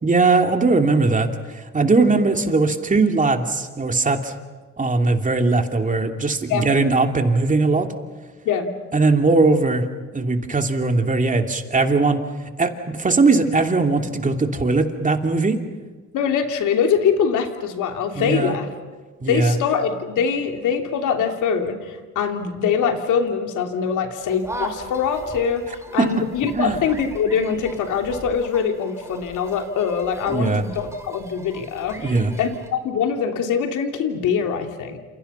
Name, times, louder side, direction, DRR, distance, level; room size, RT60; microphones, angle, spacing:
voice 1, 0.0-4.3 4.8-7.9 8.9-9.9 10.1-12.2 12.6-15.6 18.2-18.6 19.2-19.6 26.0-26.1 26.5-26.8 30.3-30.6 32.0-32.3, right 3 dB, 25° right, 5 dB, 2.8 m, -19 dB
voice 2, 16.1-18.7 19.3-32.1 32.4-35.0, left 6 dB, 85° left, 5 dB, 2.9 m, -23 dB
sound 1, 24.2-32.7, right 2 dB, 10° right, 3.7 m, -38 dB
29.0 x 28.0 x 5.7 m, 1.4 s
cardioid pair, 90°, 30 cm